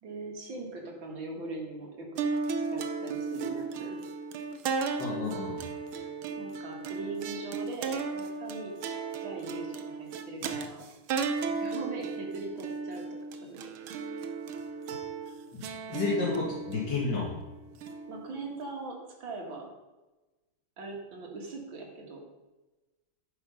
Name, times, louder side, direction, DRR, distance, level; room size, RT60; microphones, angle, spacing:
voice 1, 0.0-2.2 2.7-4.0 6.4-8.9 9.2-10.8 11.4-13.7 18.1-19.7 20.8-22.2, right 3 dB, 70° right, 0 dB, 2.7 m, -41 dB
sound 1, 2.2-18.6, right 4 dB, 90° right, 1.7 m, -35 dB
voice 2, 5.0-5.6 15.5-15.6 15.9-17.3, left 3 dB, 60° left, -6 dB, 2.5 m, -31 dB
10.0 x 6.3 x 5.4 m, 1.1 s
omnidirectional pair, 2.2 m